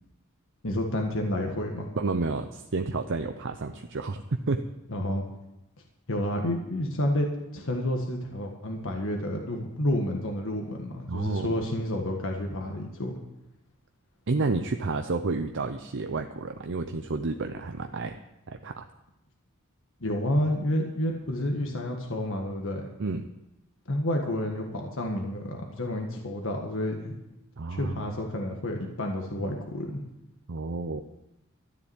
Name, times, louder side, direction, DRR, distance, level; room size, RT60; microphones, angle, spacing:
voice 1, 0.6-1.9 4.9-5.2 6.1-7.3 7.5-13.2 20.0-22.9 23.9-27.1 27.7-30.0, left 1 dB, 65° left, 2 dB, 1.6 m, -30 dB
voice 2, 2.0-4.6 11.1-11.6 14.3-18.1 18.5-18.8 23.0-23.3 27.6-28.0 30.5-31.0, right 3 dB, 60° right, 6 dB, 0.7 m, -30 dB
13.0 x 7.0 x 9.5 m, 0.92 s
head